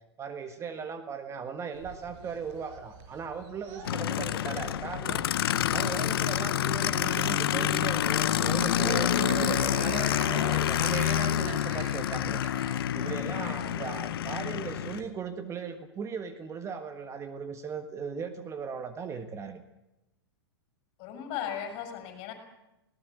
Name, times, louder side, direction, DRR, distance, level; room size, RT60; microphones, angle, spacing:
voice 1, 0.2-5.2 5.7-12.4 12.9-19.6, right 6 dB, 20° right, 7 dB, 1.5 m, -38 dB
sound 1, 1.7-15.1, right 4 dB, 40° right, 5.3 m, -41 dB
Aircraft, 3.8-15.0, left 12 dB, 65° left, 1.0 m, -28 dB
voice 2, 13.3-13.7 21.0-22.3, left 9 dB, 40° left, 6 dB, 6.1 m, -37 dB
20.5 x 18.0 x 8.2 m, 0.94 s
hypercardioid pair, 115°, 14 cm